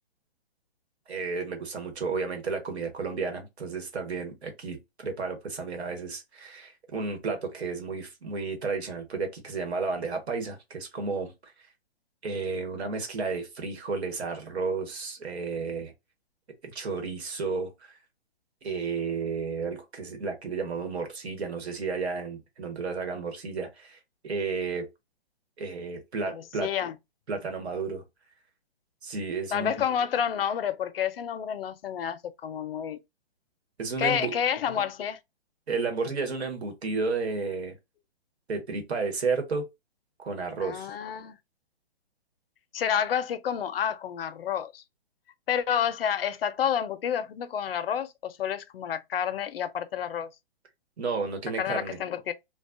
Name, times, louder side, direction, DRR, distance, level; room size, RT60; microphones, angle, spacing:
voice 1, 1.1-11.5 12.2-15.9 16.6-18.0 18.6-24.0 24.2-24.8 25.6-26.7 27.3-28.0 29.0-29.8 33.8-34.3 35.7-37.7 38.5-39.7 40.2-40.9 51.0-52.0, right 4 dB, 80° right, 1.2 m, -32 dB
voice 2, 26.3-26.9 29.5-33.0 34.0-35.2 40.6-41.4 42.7-44.8 45.5-50.3 51.6-52.3, left 8 dB, 65° left, 0.5 m, -29 dB
2.4 x 2.2 x 2.4 m
hypercardioid pair, 155°, 32 cm